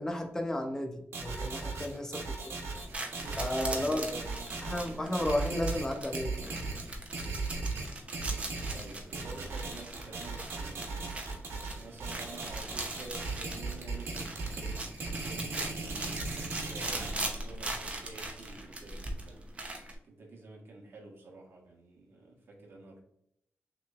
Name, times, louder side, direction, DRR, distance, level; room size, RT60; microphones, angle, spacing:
voice 1, 0.0-2.5 3.4-4.1 4.6-6.6, left 1 dB, 10° left, 4 dB, 0.7 m, -33 dB
sound 1, 1.1-17.1, right 3 dB, 90° right, 1.1 m, -37 dB
voice 2, 2.6-4.6 8.6-23.0, right 2 dB, 65° right, 0 dB, 1.3 m, -49 dB
sound 2, 2.7-19.9, right 2 dB, 30° right, 0.7 m, -41 dB
6.0 x 3.1 x 2.4 m, 0.73 s
wide cardioid pair, 140°, 4 cm